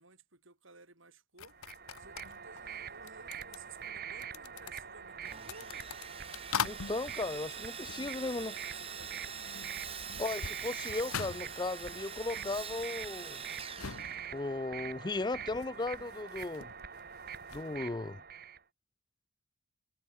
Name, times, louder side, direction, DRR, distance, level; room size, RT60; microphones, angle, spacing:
voice 1, 0.0-1.6 2.0-5.9 7.1-9.5, right 4 dB, 65° right, 5.2 m, -57 dB
sound 1, 1.4-8.7 8.9-17.7, left 7 dB, 90° left, 1.0 m, -44 dB
sound 2, 1.5-18.6, right 7 dB, 45° right, 3.8 m, -45 dB
Sawing, 5.2-14.7, right 7 dB, 25° right, 4.1 m, -45 dB
voice 2, 6.6-8.5 10.2-13.5 14.3-16.7 17.5-18.2, left 3 dB, 20° left, 0.5 m, -36 dB
head